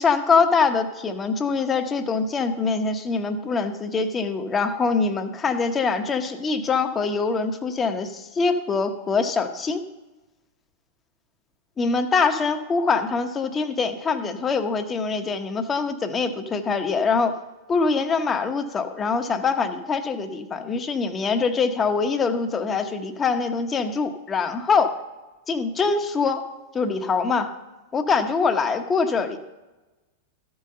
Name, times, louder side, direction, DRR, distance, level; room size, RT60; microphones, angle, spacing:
voice 1, 0.0-9.8 11.8-17.3 17.7-24.9 25.5-26.4 26.7-27.5 27.9-29.4, left 4 dB, 20° left, 6 dB, 1.0 m, -24 dB
13.0 x 5.5 x 6.7 m, 1.1 s
hypercardioid pair, 110°, 0 cm